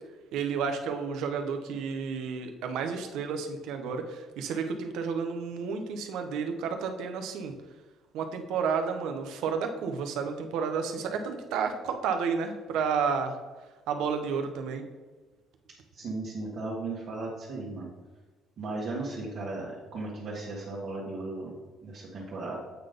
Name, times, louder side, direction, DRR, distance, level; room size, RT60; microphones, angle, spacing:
voice 1, 0.3-7.5 8.1-13.4 13.9-14.8, right 6 dB, 80° right, 6 dB, 0.9 m, -31 dB
voice 2, 15.9-17.9 18.6-21.5 21.8-22.6, right 2 dB, 45° right, -6 dB, 1.5 m, -36 dB
8.3 x 4.0 x 5.1 m, 1.3 s
cardioid pair, 160°, 0 cm